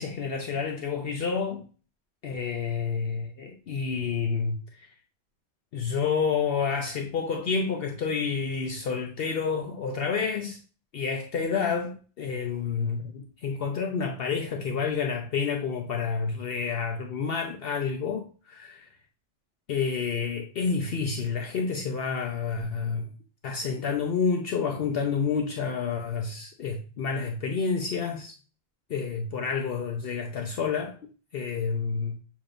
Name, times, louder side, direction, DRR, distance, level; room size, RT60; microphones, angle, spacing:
voice 1, 0.0-1.6 2.2-4.9 5.7-10.6 10.9-18.9 19.7-23.1 23.4-28.3 28.9-31.0 31.3-32.2, left 5 dB, 60° left, 0.8 m, -29 dB
6.7 x 3.0 x 2.5 m
omnidirectional pair, 1.2 m